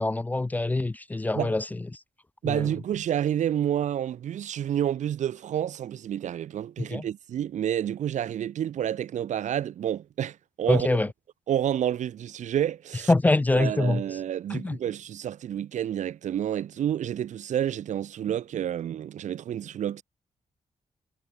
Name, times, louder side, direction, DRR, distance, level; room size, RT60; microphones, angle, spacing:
voice 1, 0.0-1.6 2.4-2.7 6.9-7.0 10.7-11.1 13.1-14.0 14.5-14.8, left 2 dB, 15° left, 0.5 m, -24 dB
voice 2, 2.4-10.9 11.5-13.1 13.5-20.0, right 10 dB, 80° right, 2.1 m, -29 dB
wide cardioid pair, 160°, 12 cm